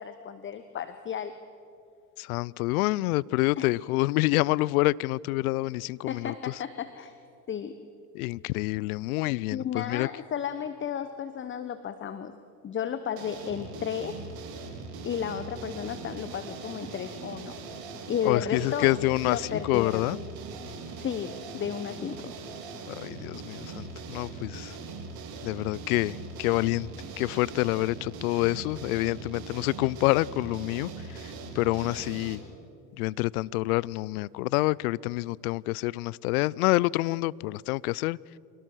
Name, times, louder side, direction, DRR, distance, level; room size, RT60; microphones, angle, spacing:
voice 1, 0.0-1.3 3.6-3.7 6.1-7.1 7.5-7.8 9.5-12.3 12.6-14.2 15.0-17.5 18.1-18.9 19.3-20.1 21.0-22.3, left 8 dB, 25° left, 1.0 m, -33 dB
voice 2, 2.2-6.6 8.1-10.1 18.2-20.2 22.9-24.8 25.4-26.9 27.2-32.4 33.0-38.2, left 20 dB, 65° left, 0.5 m, -27 dB
sound 1, 13.2-32.4, right 4 dB, 50° right, 3.3 m, -41 dB
25.5 x 17.5 x 6.3 m
hypercardioid pair, 85°, 48 cm